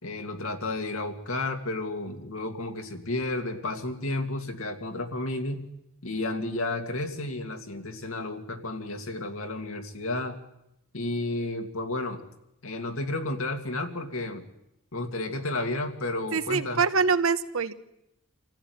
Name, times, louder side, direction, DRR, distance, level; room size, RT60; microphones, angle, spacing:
voice 1, 0.0-5.7 6.0-10.4 10.9-12.2 12.6-14.5 14.9-16.8, left 2 dB, 75° left, 5 dB, 2.5 m, -32 dB
voice 2, 16.3-17.7, right 5 dB, 75° right, 12 dB, 1.2 m, -24 dB
26.5 x 15.0 x 9.6 m, 0.88 s
head